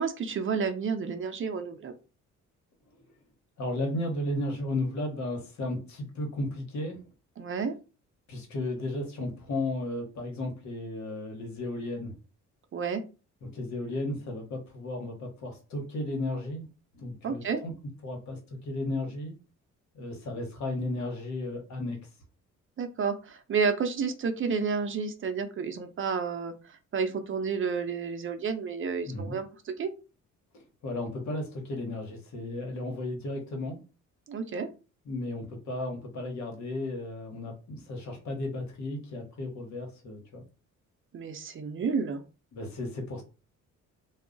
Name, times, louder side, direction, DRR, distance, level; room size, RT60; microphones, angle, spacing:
voice 1, 0.0-1.9 7.4-7.7 12.7-13.0 17.2-17.6 22.8-26.5 26.9-29.9 34.3-34.7 41.1-42.2, right 5 dB, 40° right, 7 dB, 0.5 m, -30 dB
voice 2, 3.6-7.0 8.3-12.1 13.4-16.6 16.9-17.7 18.0-19.3 19.9-22.0 29.1-29.4 30.8-33.8 35.0-40.4 42.5-43.2, left 2 dB, 65° left, 3 dB, 1.1 m, -34 dB
2.3 x 2.0 x 3.8 m, 0.33 s
cardioid pair, 90°, 30 cm